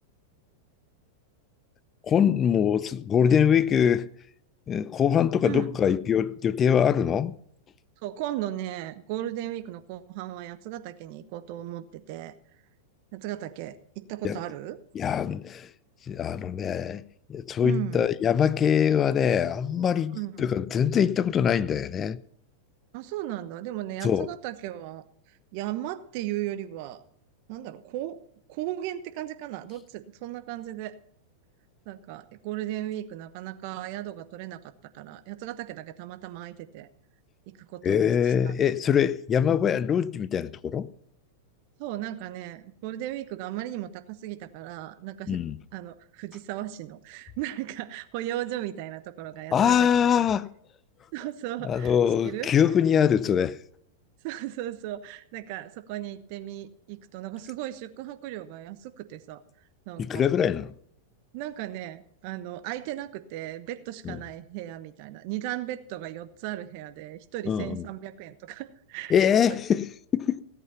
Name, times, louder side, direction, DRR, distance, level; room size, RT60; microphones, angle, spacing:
voice 1, 2.0-4.1 4.7-7.3 14.2-14.4 14.9-15.7 16.1-17.0 17.3-22.2 24.0-24.3 37.8-40.9 45.3-45.6 49.5-50.5 51.6-53.6 60.0-60.7 64.0-64.2 67.5-67.8 69.1-70.4, left 8 dB, 25° left, 0.7 m, -23 dB
voice 2, 8.0-12.4 13.1-14.8 17.6-18.0 20.1-20.5 22.9-25.0 25.5-27.0 27.5-28.2 28.5-31.0 31.9-34.6 34.9-36.9 37.5-38.5 39.4-39.5 41.8-45.4 45.7-50.2 51.1-52.0 52.2-52.5 54.2-59.4 59.9-60.3 61.3-69.1 69.5-69.6, right 13 dB, 50° right, 1.1 m, -36 dB
17.0 x 8.2 x 5.7 m
figure-of-eight pair, 95°, 0 cm